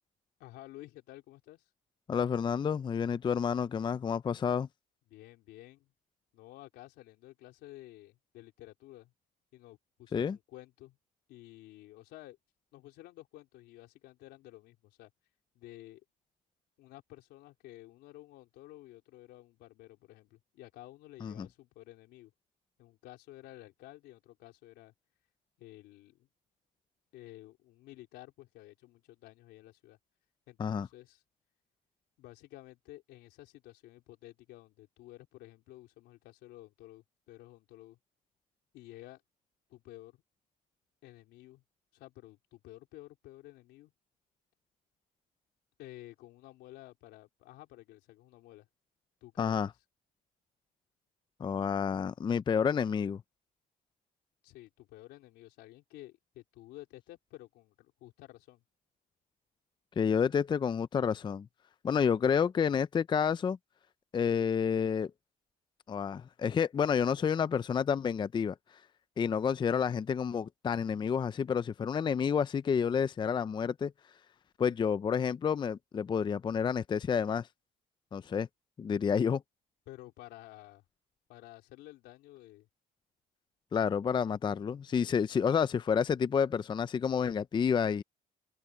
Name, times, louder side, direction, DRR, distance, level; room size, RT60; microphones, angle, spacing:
voice 1, 0.4-1.7 5.1-5.9 6.3-9.1 9.5-11.0 11.3-12.4 12.7-15.1 15.5-16.0 16.8-22.3 22.8-24.9 25.6-26.3 27.1-30.0 30.5-31.2 32.2-38.0 38.7-39.2 39.7-40.2 41.0-41.6 41.9-43.9 45.8-48.7 49.2-49.6 54.4-58.6 79.9-80.8 81.3-82.7, left 16 dB, 85° left, 3.8 m, -52 dB
voice 2, 2.1-4.7 10.1-10.4 21.2-21.5 30.6-30.9 49.4-49.7 51.4-53.2 60.0-61.5 61.8-63.6 64.1-65.1 65.9-68.6 69.2-73.9 74.6-77.5 78.1-78.5 78.8-79.4 83.7-88.0, left 7 dB, 25° left, 0.5 m, -29 dB
cardioid pair, 110°, 17 cm